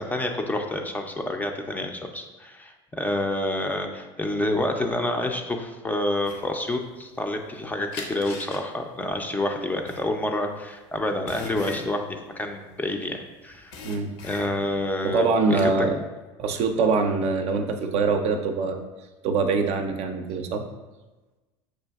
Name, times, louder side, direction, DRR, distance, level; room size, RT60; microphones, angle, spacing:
voice 1, 0.0-13.7 14.2-15.9, left 1 dB, 10° left, 4 dB, 0.4 m, -28 dB
sound 1, 6.2-7.5 7.9-13.2 13.5-14.8 15.2-15.7, left 3 dB, 65° left, 0.6 m, -40 dB
voice 2, 15.0-16.0 16.4-18.9 19.2-20.7, right 4 dB, 55° right, 6 dB, 0.4 m, -24 dB
6.2 x 2.5 x 2.3 m, 1.2 s
supercardioid pair, 95°, 13 cm